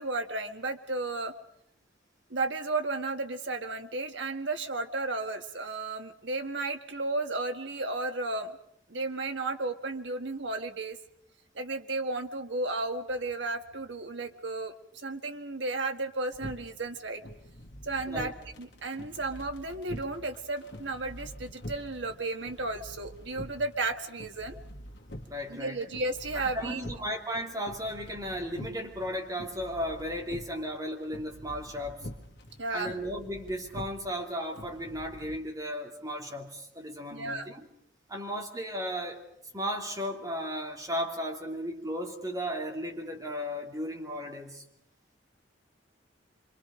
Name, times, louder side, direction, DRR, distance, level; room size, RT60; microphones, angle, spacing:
voice 1, 0.0-1.3 2.3-8.6 8.9-11.0 11.5-17.2 17.8-24.6 25.5-26.9 32.6-32.9 37.1-37.5, right 2 dB, 75° right, 5 dB, 1.7 m, -33 dB
sound 1, 16.3-35.4, equal, 65° left, 2.0 m, -46 dB
voice 2, 25.3-25.9 26.3-32.1 32.7-37.7 38.1-39.2 39.5-44.6, equal, 20° right, 0 dB, 2.9 m, -35 dB
27.0 x 24.5 x 5.1 m, 0.72 s
head